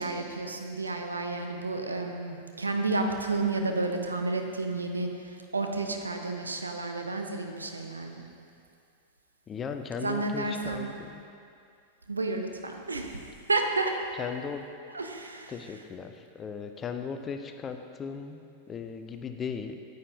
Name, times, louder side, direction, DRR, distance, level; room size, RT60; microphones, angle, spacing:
voice 1, 0.0-5.1 5.5-8.3 10.0-10.9 12.1-13.1 13.5-13.9 14.9-15.5, right 3 dB, 80° right, 4 dB, 0.6 m, -31 dB
voice 2, 9.5-11.2 14.2-14.6 15.5-19.8, left 6 dB, 25° left, 7 dB, 0.5 m, -37 dB
9.4 x 8.0 x 2.7 m, 2.4 s
figure-of-eight pair, 90°, 0 cm